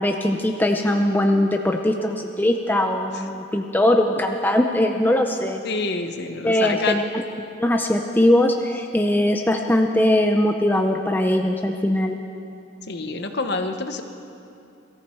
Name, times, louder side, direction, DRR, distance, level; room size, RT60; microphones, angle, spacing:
voice 1, 0.0-5.6 6.4-7.2 7.6-12.2, left 1 dB, 10° left, 3 dB, 0.5 m, -20 dB
voice 2, 5.6-7.0 12.9-14.0, left 3 dB, 50° left, 7 dB, 1.0 m, -27 dB
22.5 x 14.5 x 4.5 m, 2.6 s
head